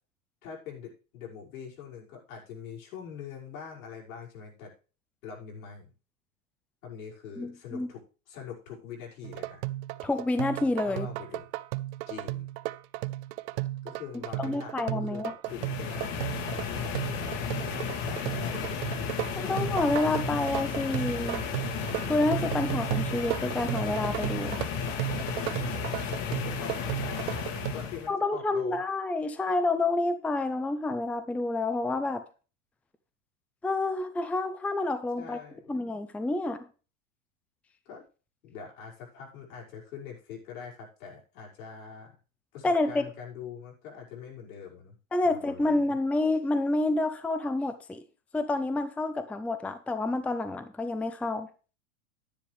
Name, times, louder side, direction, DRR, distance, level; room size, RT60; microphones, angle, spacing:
voice 1, 0.4-4.7 5.2-5.9 6.8-9.6 10.8-11.4 12.1-12.5 13.8-16.1 16.6-18.5 26.3-27.3 27.7-28.8 35.2-35.6 37.9-38.0 38.4-42.2 42.5-45.0 45.2-45.9, left 7 dB, 75° left, -2 dB, 5.8 m, -43 dB
voice 2, 7.4-7.9 10.0-11.1 14.4-15.3 19.4-21.4 22.1-24.6 28.1-32.2 33.6-35.4 35.7-36.6 42.6-43.0 45.1-48.0 48.3-51.5, left 2 dB, 5° left, 10 dB, 0.6 m, -28 dB
sound 1, 9.2-27.7, right 18 dB, 55° right, 0.7 m, -35 dB
sound 2, 15.5-28.1, left 6 dB, 60° left, 2.3 m, -33 dB
10.0 x 9.8 x 3.4 m, 0.34 s
hypercardioid pair, 120°, 41 cm